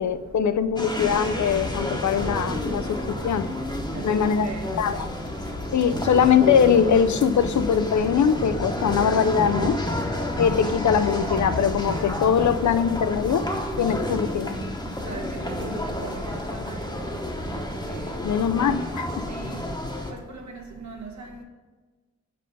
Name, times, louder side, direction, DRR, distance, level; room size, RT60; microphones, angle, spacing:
voice 1, 0.0-3.5 4.0-4.5 4.8-5.0 5.7-9.8 10.4-13.5 13.8-14.6 18.2-19.3, left 7 dB, 75° left, 12 dB, 0.4 m, -22 dB
sound 1, 0.8-20.1, left 1 dB, 15° left, 0.9 m, -30 dB
sound 2, 2.2-18.0, right 2 dB, 40° right, 0.7 m, -39 dB
voice 2, 3.9-4.6 15.1-17.1 17.9-18.1 19.3-19.6 20.1-21.4, right 4 dB, 70° right, 3 dB, 1.1 m, -39 dB
5.4 x 5.3 x 5.4 m, 1.3 s
wide cardioid pair, 100°, 29 cm